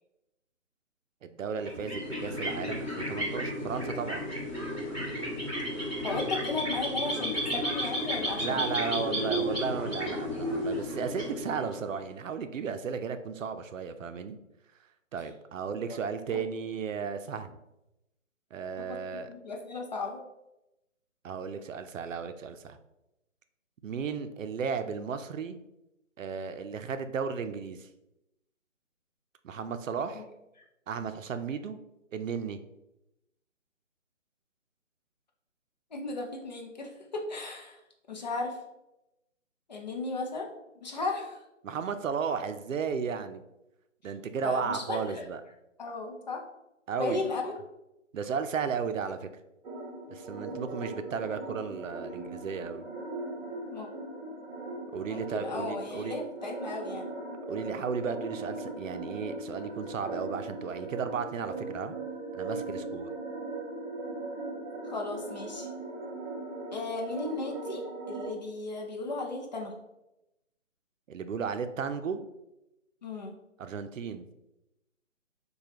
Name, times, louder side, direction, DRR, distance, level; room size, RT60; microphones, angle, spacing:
voice 1, 1.2-4.2 8.4-14.4 15.1-17.6 18.5-19.3 21.2-22.8 23.8-25.6 26.2-27.9 29.4-30.2 30.9-31.8 32.1-32.6 41.6-43.4 44.0-45.4 46.9-47.3 48.1-49.3 50.1-52.9 54.9-56.2 57.5-62.0 62.3-63.1 71.1-72.2 73.6-74.3, right 6 dB, 80° right, 9 dB, 0.5 m, -34 dB
sound 1, 1.6-12.0, equal, 10° left, 1.4 m, -33 dB
voice 2, 5.7-9.2 15.9-16.0 16.3-16.4 18.8-20.2 30.1-30.2 30.6-30.7 35.9-37.8 38.1-38.6 39.7-40.5 40.8-41.4 44.4-45.3 45.8-46.4 47.0-47.5 53.7-53.9 55.1-57.1 64.9-65.7 66.7-67.8 68.1-69.7 73.0-73.3, left 3 dB, 35° left, 1 dB, 0.5 m, -35 dB
sound 2, 49.6-68.3, right 2 dB, 60° right, 0.9 m, -39 dB
4.8 x 2.3 x 2.8 m, 0.92 s
figure-of-eight pair, 155°, 38 cm